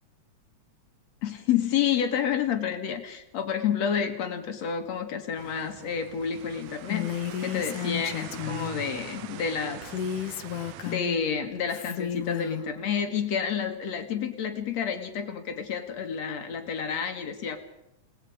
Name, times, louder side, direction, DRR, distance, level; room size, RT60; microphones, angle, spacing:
voice 1, 1.2-9.8 10.2-10.4 10.9-17.6, left 7 dB, 60° left, 6 dB, 2.9 m, -29 dB
sound 1, 5.4-11.0, right 12 dB, 70° right, 1.8 m, -43 dB
Female speech woman speaking, 6.9-8.8 9.8-11.2 11.7-12.7, left 10 dB, 85° left, 2.5 m, -33 dB
29.0 x 19.0 x 5.0 m, 0.87 s
omnidirectional pair, 3.5 m